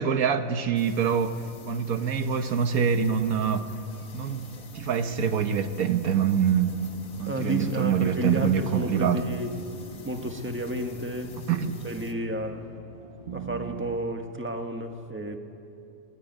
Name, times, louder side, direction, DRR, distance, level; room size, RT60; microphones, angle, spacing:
voice 1, 0.0-3.7 4.1-4.5 4.7-6.7 7.2-9.2 11.5-11.8, right 7 dB, 80° right, 8 dB, 1.5 m, -25 dB
sound 1, 0.7-12.1, left 6 dB, 80° left, 1.9 m, -48 dB
sound 2, 3.2-14.0, right 7 dB, 45° right, 1.1 m, -46 dB
voice 2, 7.3-9.5 10.0-11.6 11.8-12.7 13.3-15.4, right 1 dB, 10° right, 4 dB, 1.5 m, -31 dB
23.0 x 20.5 x 9.2 m, 2.5 s
omnidirectional pair, 1.5 m